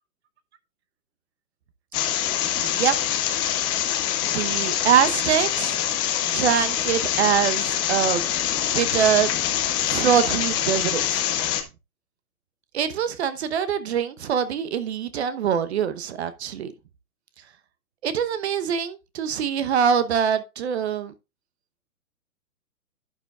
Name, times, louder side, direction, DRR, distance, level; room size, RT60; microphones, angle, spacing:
sound 1, 1.9-11.6, left 11 dB, 10° left, 0.5 m, -25 dB
voice 1, 2.6-2.9 3.8-3.9 4.3-5.8 6.2-8.3 8.7-9.4 9.8-11.2 12.7-16.7 18.0-21.1, right 8 dB, 45° right, 1.0 m, -24 dB
11.5 x 9.1 x 2.3 m
hypercardioid pair, 135°, 44 cm